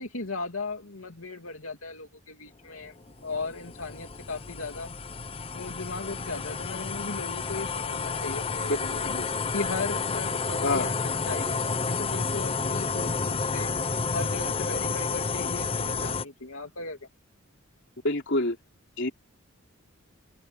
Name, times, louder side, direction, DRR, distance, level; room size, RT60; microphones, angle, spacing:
voice 1, 0.0-2.9 3.2-4.9 5.5-9.1 9.5-10.9 11.3-13.7 14.1-17.0, left 3 dB, 80° left, 2.8 m, -37 dB
sound 1, 2.8-16.2, left 4 dB, 25° left, 0.7 m, -30 dB
voice 2, 18.0-18.6 19.0-19.1, left 2 dB, 60° left, 3.5 m, -26 dB
open air
head